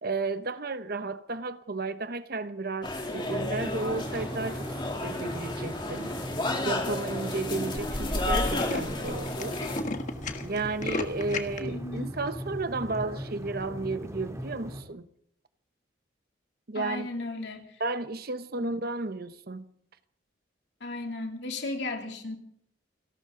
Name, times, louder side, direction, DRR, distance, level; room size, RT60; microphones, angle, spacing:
voice 1, 0.0-4.7 5.0-6.1 6.6-9.6 10.4-15.1 16.7-17.1 17.8-19.7, right 3 dB, 50° right, 1.0 m, -33 dB
sound 1, 2.8-9.8, left 2 dB, 25° left, 3.1 m, -32 dB
sound 2, 3.2-14.8, equal, 15° right, 3.1 m, -39 dB
Tools, 5.5-6.0 6.6-6.7 6.9-7.0 7.2-7.4 7.7-7.8 8.1-11.6, left 2 dB, 40° left, 1.5 m, -35 dB
voice 2, 11.6-12.1 16.7-17.8 18.6-18.7 20.8-22.4, left 2 dB, 60° left, 3.0 m, -35 dB
30.0 x 12.5 x 3.9 m
head